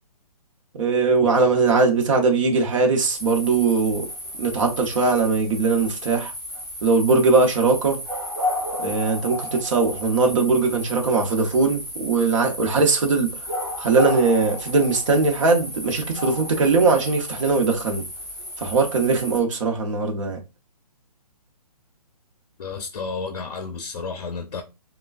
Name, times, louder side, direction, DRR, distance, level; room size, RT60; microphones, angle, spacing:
voice 1, 0.7-4.1 4.4-6.3 6.8-8.0 8.8-13.3 13.8-18.0 18.6-20.4, right 4 dB, 50° right, 0.8 m, -20 dB
sound 1, 3.0-19.4, left 1 dB, ahead, 1.4 m, -33 dB
voice 2, 22.6-24.6, left 4 dB, 65° left, 0.5 m, -31 dB
3.2 x 2.2 x 2.4 m
hypercardioid pair, 155°, 20 cm